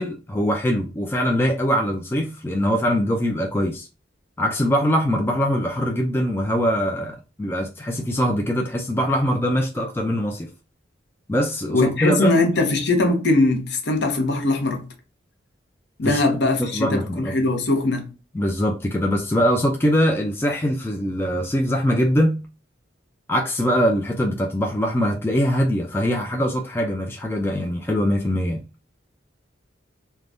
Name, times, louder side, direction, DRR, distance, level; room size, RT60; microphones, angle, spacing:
voice 1, 0.0-3.9 4.4-10.5 11.3-12.4 16.0-16.3 16.6-17.3 18.3-22.4 23.3-28.6, equal, 10° left, 0.3 m, -22 dB
voice 2, 11.7-14.9 16.0-18.1, left 2 dB, 65° left, 0.7 m, -21 dB
3.4 x 2.2 x 2.5 m
head